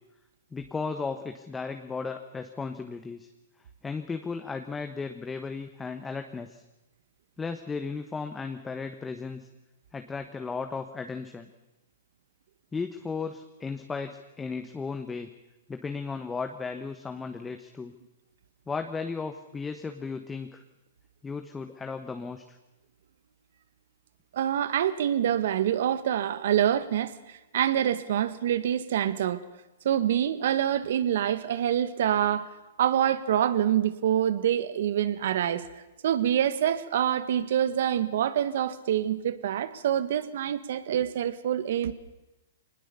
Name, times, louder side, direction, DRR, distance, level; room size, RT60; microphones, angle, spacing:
voice 1, 0.5-3.3 3.8-6.6 7.4-9.5 9.9-11.5 12.7-15.3 15.7-17.9 18.7-20.6 21.2-22.6, left 4 dB, 10° left, 6 dB, 1.3 m, -35 dB
voice 2, 24.3-29.4 29.8-32.5 32.8-35.6 36.0-41.9, right 10 dB, 65° right, 13 dB, 1.6 m, -26 dB
23.5 x 20.0 x 7.0 m, 1.0 s
hypercardioid pair, 130°, 0 cm